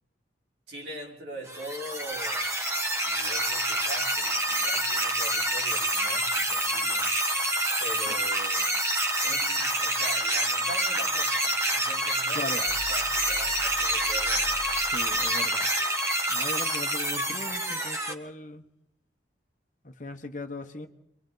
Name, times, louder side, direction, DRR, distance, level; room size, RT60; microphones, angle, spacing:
voice 1, 0.7-2.4 2.9-7.1 7.8-8.7 9.2-14.5, right 1 dB, 65° right, 4.0 m, -42 dB
sound 1, 1.5-18.1, right 1 dB, 15° right, 1.6 m, -27 dB
voice 2, 12.3-12.6 14.9-15.7 16.3-18.6 19.8-20.9, left 2 dB, 45° left, 1.3 m, -38 dB
sound 2, 12.7-16.2, left 3 dB, 90° left, 1.4 m, -45 dB
29.5 x 23.5 x 4.0 m
head